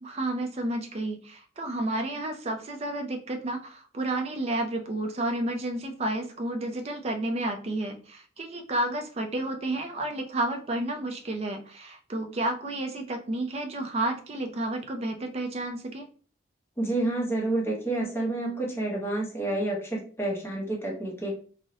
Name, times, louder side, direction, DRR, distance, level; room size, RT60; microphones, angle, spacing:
voice 1, 0.0-16.1, right 1 dB, 35° right, 5 dB, 0.4 m, -31 dB
voice 2, 16.8-21.3, right 2 dB, 15° left, -2 dB, 0.7 m, -29 dB
2.6 x 2.0 x 2.6 m, 0.41 s
head